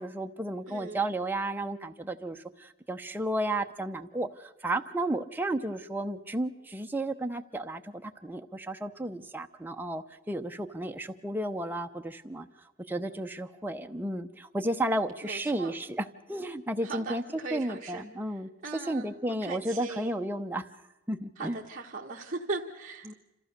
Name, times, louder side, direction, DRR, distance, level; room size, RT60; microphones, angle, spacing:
voice 1, 0.0-12.5 12.9-17.2 17.5-18.5 18.9-20.6 21.1-21.6 23.0-23.1, right 1 dB, 10° right, 5 dB, 0.7 m, -33 dB
voice 2, 0.6-1.1 15.2-15.8 16.8-18.0 18.6-19.2 19.4-20.1 21.4-23.1, right 3 dB, 40° right, -3 dB, 1.3 m, -38 dB
26.5 x 15.0 x 6.7 m, 0.97 s
head